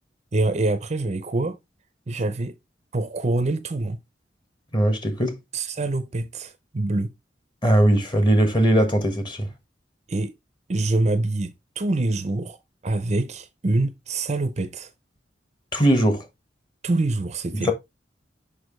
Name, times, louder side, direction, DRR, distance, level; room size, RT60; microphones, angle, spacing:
voice 1, 0.3-1.6 2.1-2.6 2.9-4.0 5.5-7.1 10.1-10.3 10.7-12.6 12.8-14.9 16.8-17.7, right 2 dB, 40° right, 0.6 m, -25 dB
voice 2, 4.7-5.4 7.6-9.5 15.7-16.3 17.5-17.7, right 1 dB, 25° left, 1.4 m, -20 dB
6.3 x 5.5 x 3.2 m
head